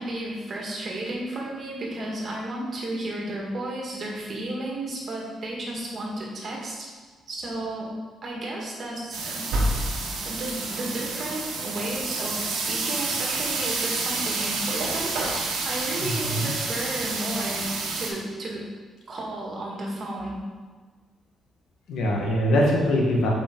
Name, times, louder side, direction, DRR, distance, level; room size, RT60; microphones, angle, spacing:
voice 1, 0.0-6.9 7.3-7.9 8.2-9.5 10.2-18.6 19.1-20.4, right 1 dB, 45° right, -2 dB, 1.9 m, -33 dB
sound 1, 9.1-18.1, right 3 dB, 85° right, 1.2 m, -29 dB
voice 2, 16.0-16.5 21.9-23.3, equal, 80° left, -2 dB, 1.5 m, -23 dB
7.0 x 5.2 x 3.8 m, 1.4 s
cardioid pair, 90°, 0 cm